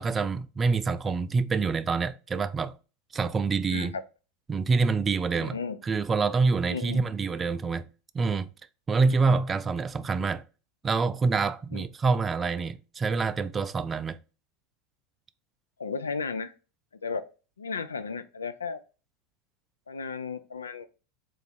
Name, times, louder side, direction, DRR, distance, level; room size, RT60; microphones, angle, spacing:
voice 1, 0.0-2.8 3.1-3.9 4.5-5.6 5.8-7.9 8.1-8.5 8.9-10.4 10.8-14.2, right 4 dB, 25° right, 0.3 m, -26 dB
voice 2, 3.7-4.0 5.3-5.8 6.7-7.1 9.2-9.3 11.7-11.8 15.8-16.5 17.0-17.3 17.6-18.8 19.9-20.9, left 5 dB, 90° left, 0.3 m, -34 dB
3.9 x 2.5 x 4.1 m
hypercardioid pair, 90°, 0 cm